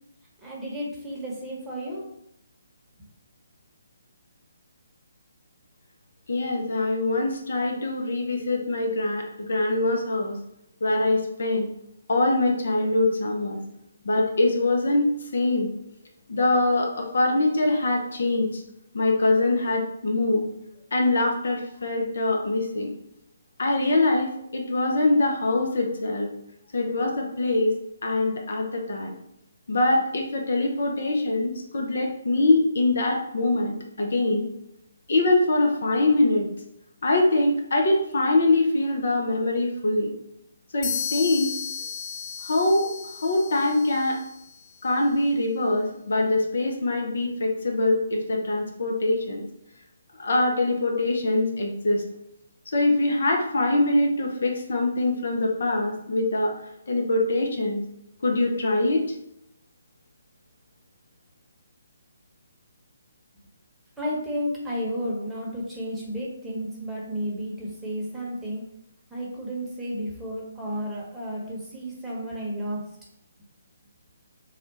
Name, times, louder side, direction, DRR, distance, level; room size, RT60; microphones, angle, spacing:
voice 1, 0.4-2.1 64.0-68.6 69.1-72.8, equal, 5° right, -6 dB, 1.0 m, -32 dB
voice 2, 6.3-10.4 10.8-11.7 12.1-13.6 14.0-15.7 16.3-18.6 18.9-20.5 20.9-22.9 23.6-26.3 26.7-27.7 28.0-29.1 29.7-34.5 35.1-36.5 37.0-40.1 40.7-41.5 42.4-42.9 43.2-44.2 44.8-49.4 50.2-52.1 52.7-56.5 56.9-57.8 58.2-59.0, left 2 dB, 65° left, 1 dB, 0.7 m, -23 dB
sound 1, 40.8-44.6, left 7 dB, 20° left, 0.5 m, -34 dB
3.4 x 2.4 x 4.0 m, 0.78 s
figure-of-eight pair, 140°, 0 cm